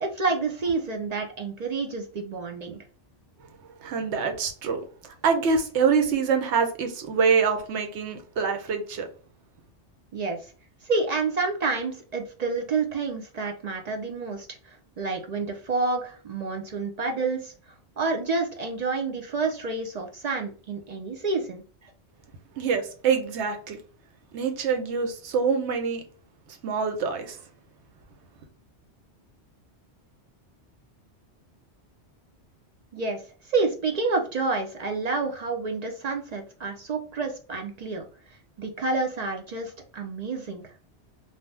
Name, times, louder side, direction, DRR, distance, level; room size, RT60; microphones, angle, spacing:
voice 1, 0.0-2.8 10.1-10.5 10.8-17.5 18.0-21.9 32.9-33.2 33.5-40.6, right 3 dB, 55° right, 0.5 m, -29 dB
voice 2, 3.8-9.1 22.6-23.8 24.3-26.0 26.5-27.4, right 5 dB, 85° right, 0.9 m, -25 dB
2.6 x 2.1 x 3.2 m
omnidirectional pair, 1.2 m